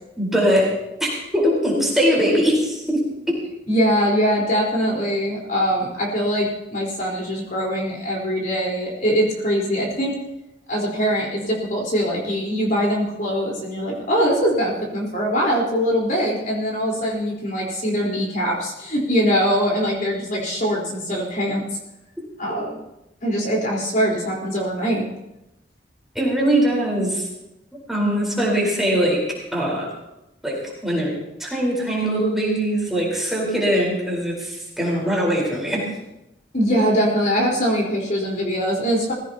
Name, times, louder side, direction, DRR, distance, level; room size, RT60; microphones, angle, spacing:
voice 1, 0.2-0.7 1.0-3.0 26.1-27.3 27.9-29.2 29.5-29.9 30.4-35.8, equal, ahead, -4 dB, 4.5 m, -21 dB
voice 2, 3.7-10.2 10.7-21.6 22.4-22.8 23.2-25.0 36.5-39.1, equal, 50° left, -3 dB, 4.3 m, -22 dB
19.5 x 16.0 x 2.9 m, 0.91 s
head